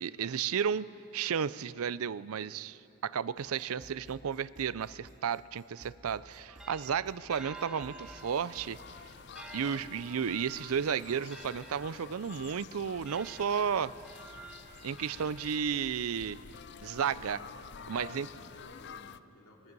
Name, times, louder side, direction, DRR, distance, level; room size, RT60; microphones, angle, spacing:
voice 1, 0.0-8.8 9.5-13.9 14.8-16.4 16.8-17.4 17.9-18.3, right 7 dB, 80° right, 18 dB, 0.5 m, -33 dB
sound 1, 3.4-8.9, right 1 dB, 30° right, 0.8 m, -57 dB
sound 2, 6.2-16.1, right 2 dB, 5° right, 1.2 m, -51 dB
sound 3, 7.8-19.2, left 7 dB, 50° left, 0.4 m, -50 dB
voice 2, 16.9-19.7, left 1 dB, 80° left, -1 dB, 3.0 m, -56 dB
25.0 x 20.0 x 5.4 m, 2.8 s
head